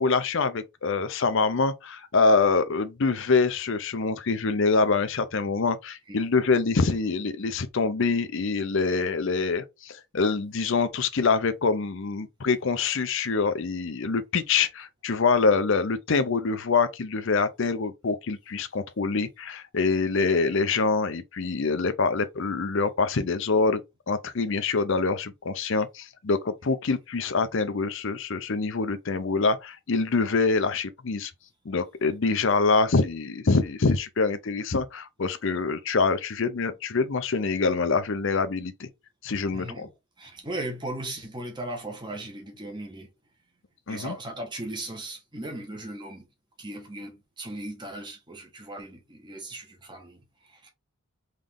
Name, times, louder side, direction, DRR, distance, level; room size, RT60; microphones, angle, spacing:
voice 1, 0.0-23.8 24.1-31.3 31.7-38.9 39.2-39.9 43.9-44.1, left 4 dB, 60° left, 0.6 m, -25 dB
voice 2, 39.5-39.9 40.2-43.1 43.9-46.3 46.6-50.7, right 1 dB, 20° right, 1.2 m, -37 dB
3.8 x 3.2 x 3.5 m
head